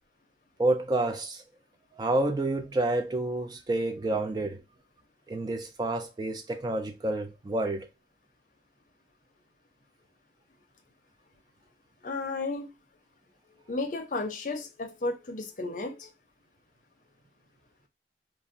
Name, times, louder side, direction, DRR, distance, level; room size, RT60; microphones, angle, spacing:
voice 1, 0.6-1.4 1.9-4.6 5.3-7.9, right 2 dB, 25° right, 0.3 m, -29 dB
voice 2, 12.0-12.7 13.7-16.1, left 3 dB, 45° left, 0.6 m, -33 dB
2.5 x 2.0 x 3.7 m
head